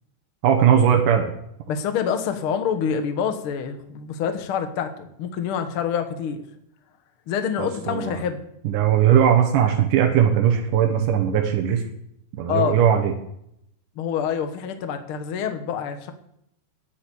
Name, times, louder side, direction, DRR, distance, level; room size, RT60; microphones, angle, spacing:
voice 1, 0.4-1.3 7.6-8.1 8.6-11.8 12.4-13.1, right 9 dB, 65° right, 2 dB, 2.3 m, -19 dB
voice 2, 1.7-6.4 7.3-8.5 12.5-12.8 13.9-16.1, left 7 dB, 90° left, 7 dB, 1.1 m, -26 dB
9.8 x 9.1 x 8.4 m, 0.77 s
omnidirectional pair, 4.4 m